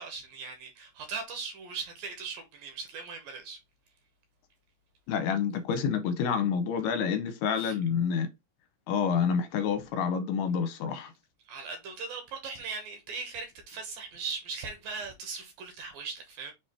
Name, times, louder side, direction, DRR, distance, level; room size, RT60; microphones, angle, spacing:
voice 1, 0.0-3.6 7.5-7.8 11.4-16.5, right 5 dB, 65° right, 2.5 m, -39 dB
voice 2, 5.1-8.3 8.9-11.1, left 7 dB, 75° left, 2.7 m, -28 dB
6.9 x 3.1 x 4.5 m
omnidirectional pair, 4.9 m